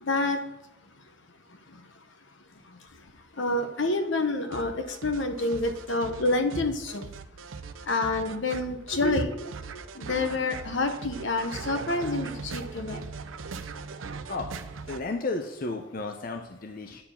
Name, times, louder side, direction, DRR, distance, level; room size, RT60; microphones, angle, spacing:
voice 1, 0.0-0.4 3.4-7.0 7.9-9.5 10.0-13.0, left 2 dB, 70° left, 8 dB, 1.0 m, -28 dB
sound 1, 4.5-15.0, right 4 dB, 80° right, 0.6 m, -40 dB
voice 2, 14.8-17.0, left 3 dB, 45° left, 4 dB, 0.6 m, -33 dB
9.4 x 4.6 x 7.1 m, 0.92 s
head